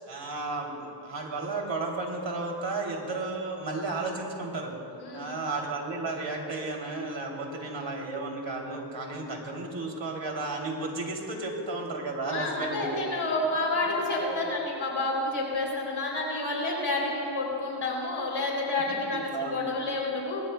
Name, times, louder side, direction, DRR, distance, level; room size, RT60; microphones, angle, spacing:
voice 1, 0.1-4.7 5.1-13.0 13.7-14.4 18.9-19.7, right 3 dB, 65° right, 0 dB, 3.0 m, -33 dB
voice 2, 5.0-5.3 12.3-20.4, left 2 dB, 85° left, -2 dB, 3.4 m, -29 dB
24.0 x 20.5 x 2.3 m, 2.9 s
cardioid pair, 45°, 48 cm